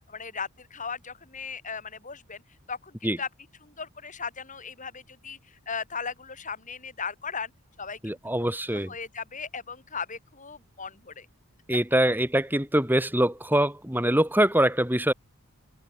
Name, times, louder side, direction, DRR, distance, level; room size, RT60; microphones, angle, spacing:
voice 1, 0.1-2.4 2.7-3.3 3.6-7.5 7.8-8.0 8.4-11.3, left 5 dB, 35° left, 7.6 m, -37 dB
voice 2, 8.0-8.9 11.7-15.1, right 1 dB, 10° right, 6.7 m, -24 dB
head